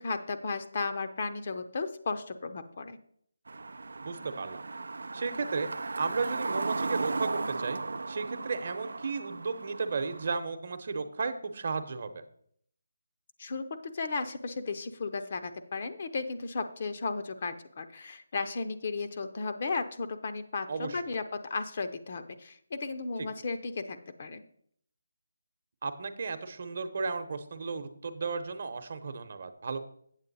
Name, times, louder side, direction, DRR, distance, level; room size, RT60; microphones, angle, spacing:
voice 1, 0.0-3.0 13.4-24.4, left 4 dB, 45° left, 8 dB, 0.7 m, -35 dB
sound 1, 3.5-10.3, right 3 dB, 75° right, 0.4 m, -36 dB
voice 2, 4.0-4.6 5.1-7.8 8.1-12.2 20.7-21.0 25.8-29.8, right 4 dB, 50° right, 9 dB, 0.9 m, -34 dB
8.1 x 7.6 x 4.1 m, 0.64 s
figure-of-eight pair, 165°, 0 cm